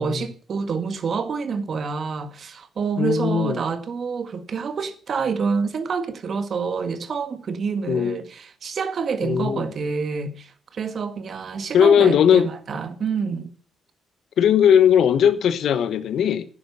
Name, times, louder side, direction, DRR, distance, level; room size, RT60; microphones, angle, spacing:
voice 1, 0.0-13.5, right 5 dB, 55° right, 1.6 m, -27 dB
voice 2, 3.0-3.6 7.9-8.2 9.2-9.7 11.7-12.5 14.4-16.5, left 8 dB, 70° left, 1.2 m, -18 dB
10.0 x 8.8 x 6.8 m
supercardioid pair, 65°, 0 cm